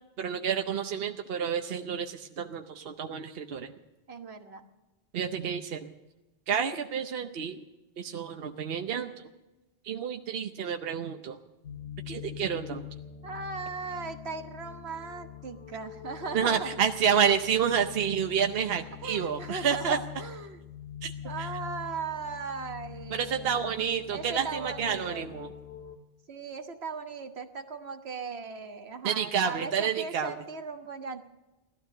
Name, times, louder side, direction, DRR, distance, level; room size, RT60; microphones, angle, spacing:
voice 1, 0.2-3.7 5.1-5.9 6.5-7.6 8.0-9.1 9.8-11.4 12.1-12.9 16.3-20.0 21.0-21.1 23.1-25.5 29.0-30.3, right 7 dB, 70° right, 6 dB, 1.0 m, -29 dB
voice 2, 4.1-4.6 13.2-16.7 19.0-20.6 21.2-23.8 24.1-25.3 26.3-31.2, right 5 dB, 90° right, 6 dB, 1.6 m, -38 dB
sound 1, 11.6-26.0, left 11 dB, 80° left, 1.3 m, -44 dB
17.0 x 12.5 x 6.6 m, 1.1 s
omnidirectional pair, 1.0 m